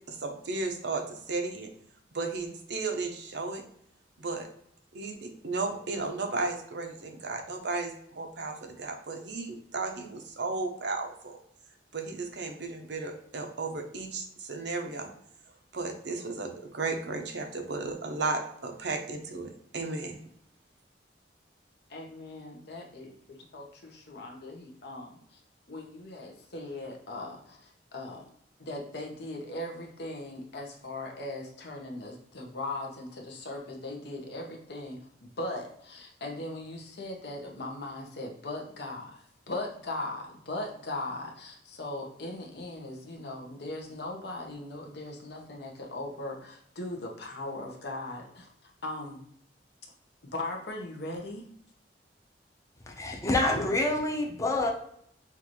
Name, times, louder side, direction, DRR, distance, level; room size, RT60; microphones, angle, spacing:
voice 1, 0.1-1.7 2.1-3.6 4.2-4.5 4.9-11.4 11.9-15.1 15.7-20.2, right 3 dB, 70° right, 4 dB, 0.7 m, -34 dB
voice 2, 21.9-25.4 25.7-28.2 28.6-48.5 48.8-49.2 50.3-51.4, left 2 dB, 65° left, 1 dB, 0.9 m, -39 dB
voice 3, 52.9-54.7, left 2 dB, 20° left, 0 dB, 0.7 m, -27 dB
5.8 x 2.6 x 3.0 m, 0.68 s
head